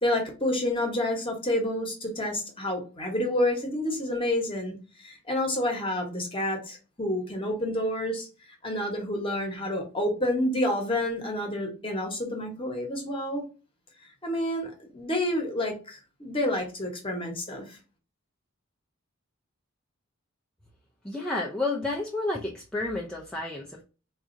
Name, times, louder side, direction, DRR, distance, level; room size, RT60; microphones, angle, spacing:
voice 1, 0.0-8.3 8.6-13.4 14.2-17.8, left 1 dB, 25° left, 1 dB, 1.0 m, -29 dB
voice 2, 21.0-23.8, left 2 dB, 5° left, -3 dB, 0.4 m, -31 dB
3.9 x 2.4 x 2.5 m, 0.34 s
head